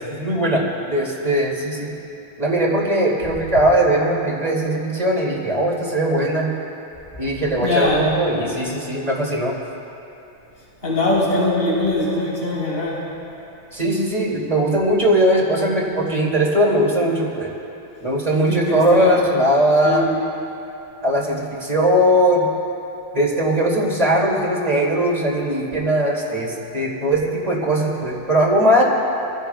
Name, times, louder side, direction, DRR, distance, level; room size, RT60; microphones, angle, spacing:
voice 1, 0.0-1.9 2.4-6.5 7.2-9.5 13.7-17.5 18.0-20.1 21.0-22.5 23.1-28.8, right 1 dB, 40° right, -3 dB, 2.7 m, -19 dB
voice 2, 7.6-8.1 10.8-13.0 18.3-19.2 19.8-20.1, left 2 dB, 80° left, -8 dB, 4.4 m, -21 dB
26.5 x 15.5 x 2.3 m, 2.9 s
omnidirectional pair, 1.1 m